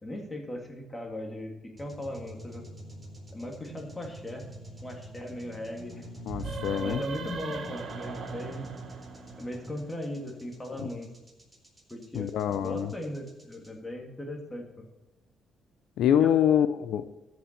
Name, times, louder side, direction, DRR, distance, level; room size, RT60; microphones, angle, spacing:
voice 1, 0.0-2.6 3.3-4.5 4.8-6.1 6.8-8.6 9.4-11.1 11.9-14.9 16.2-16.3, left 1 dB, 20° left, 2 dB, 2.5 m, -38 dB
Tension Beating, 1.8-13.7, right 1 dB, 10° right, 4.3 m, -45 dB
sound 1, 6.2-9.9, right 4 dB, 55° right, 1.5 m, -39 dB
voice 2, 6.3-7.0 10.8-10.9 12.1-12.9 16.0-17.1, left 9 dB, 80° left, 12 dB, 0.6 m, -25 dB
13.5 x 6.2 x 6.7 m, 1.0 s
cardioid pair, 90°, 0 cm